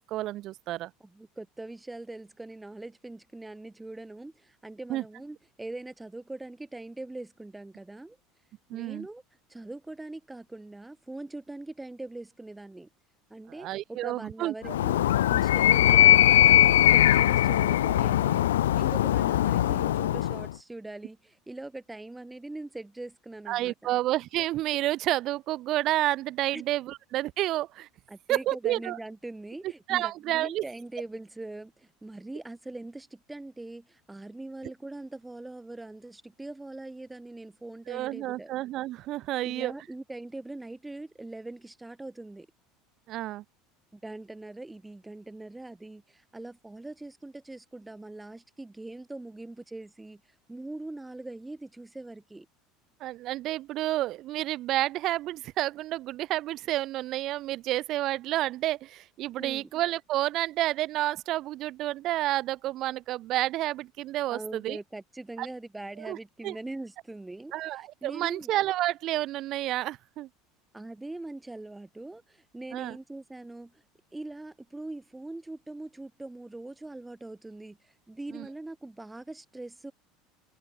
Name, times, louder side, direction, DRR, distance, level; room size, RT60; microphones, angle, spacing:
voice 1, 0.0-0.9 4.9-5.0 8.7-9.1 13.6-14.8 23.5-27.9 28.3-29.0 29.6-30.6 37.9-39.7 43.1-43.4 53.0-64.8 65.4-65.5 66.0-66.2 66.4-66.5 67.5-70.3 72.7-73.0 78.3-78.5, right 15 dB, 50° right, 0.7 m, -30 dB
voice 2, 1.0-8.2 8.7-9.2 9.5-12.9 13.3-23.9 26.5-26.7 28.1-38.5 39.4-42.5 43.9-50.2 50.5-52.5 59.4-59.7 64.3-68.5 70.7-73.8 74.1-79.9, right 2 dB, 10° right, 5.9 m, -42 dB
Animal, 14.6-20.5, left 13 dB, 70° left, 0.3 m, -21 dB
figure-of-eight pair, 70°, 0 cm